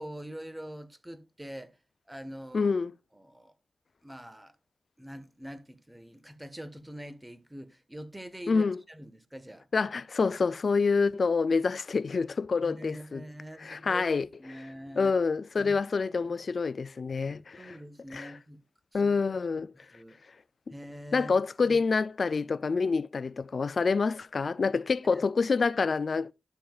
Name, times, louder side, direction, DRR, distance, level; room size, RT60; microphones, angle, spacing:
voice 1, 0.0-1.8 2.1-2.7 3.1-3.5 4.0-4.6 5.0-9.7 12.6-15.1 15.6-15.8 16.0-16.3 17.6-18.6 18.9-19.1 19.9-20.2 20.7-21.3 21.6-21.8 25.1-25.2, equal, 10° right, 1.3 m, -44 dB
voice 2, 2.5-2.9 8.5-8.8 9.7-13.2 13.6-14.3 15.0-17.8 18.1-18.3 18.9-19.7 21.1-26.3, left 4 dB, 60° left, 0.4 m, -27 dB
11.5 x 7.0 x 2.4 m
cardioid pair, 60°, 0 cm